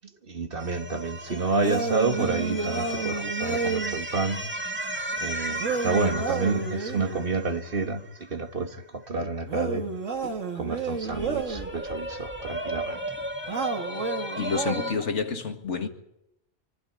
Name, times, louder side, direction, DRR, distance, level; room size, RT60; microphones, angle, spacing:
voice 1, 0.3-4.4 4.8-4.9 5.2-9.8 10.5-13.0, right 3 dB, 50° right, 1.7 m, -29 dB
sound 1, 0.6-8.5 10.9-14.9, right 1 dB, 10° right, 2.2 m, -35 dB
sound 2, 1.6-4.0 5.6-7.3 9.5-11.7 13.5-15.0, right 4 dB, 80° right, 2.1 m, -31 dB
voice 2, 14.4-15.9, left 5 dB, 70° left, 2.1 m, -29 dB
24.5 x 14.5 x 9.7 m
omnidirectional pair, 1.3 m